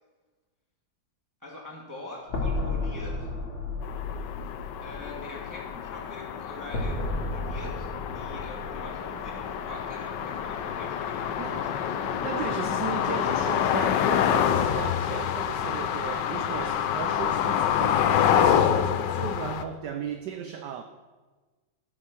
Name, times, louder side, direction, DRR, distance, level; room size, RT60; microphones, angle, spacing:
voice 1, 1.4-3.3 4.8-12.0, left 1 dB, 10° right, 1.6 m, -43 dB
sound 1, 2.3-6.3 6.7-10.1, left 2 dB, 85° left, 3.0 m, -34 dB
sound 2, 3.8-19.6, left 9 dB, 70° left, 1.2 m, -27 dB
Bowed string instrument, 8.9-12.8, right 1 dB, 85° right, 1.7 m, -50 dB
voice 2, 12.2-20.8, right 8 dB, 70° right, 1.1 m, -36 dB
13.0 x 7.5 x 6.0 m
omnidirectional pair, 2.2 m